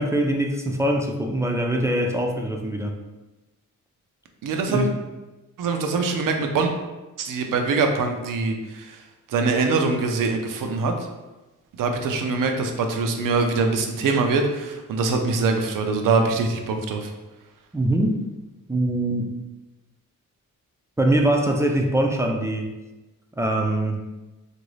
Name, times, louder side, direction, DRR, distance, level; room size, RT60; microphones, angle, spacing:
voice 1, 0.0-2.9 4.7-4.9 17.7-18.1 18.7-19.3 21.0-22.7 23.4-24.0, right 1 dB, 10° right, 2 dB, 0.3 m, -23 dB
voice 2, 4.4-4.9 5.6-6.7 7.2-9.0 9.3-10.9 11.8-17.1, right 4 dB, 85° right, 5 dB, 0.5 m, -23 dB
3.0 x 2.5 x 3.1 m, 1.1 s
cardioid pair, 85°, 32 cm